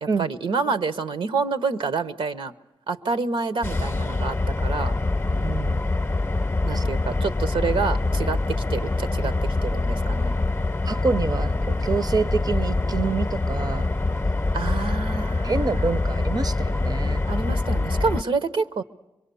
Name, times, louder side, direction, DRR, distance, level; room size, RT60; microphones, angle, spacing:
voice 1, 0.0-2.5 2.9-4.4 4.6-4.9 6.6-10.3 14.5-15.9 17.2-18.8, right 4 dB, 80° right, 1.0 m, -28 dB
sound 1, 3.6-18.2, left 2 dB, 25° left, 0.7 m, -25 dB
voice 2, 5.2-5.9 6.7-6.8 10.9-13.9 15.4-17.2, right 4 dB, 45° right, 0.7 m, -27 dB
24.5 x 22.5 x 7.0 m
cardioid pair, 55°, 9 cm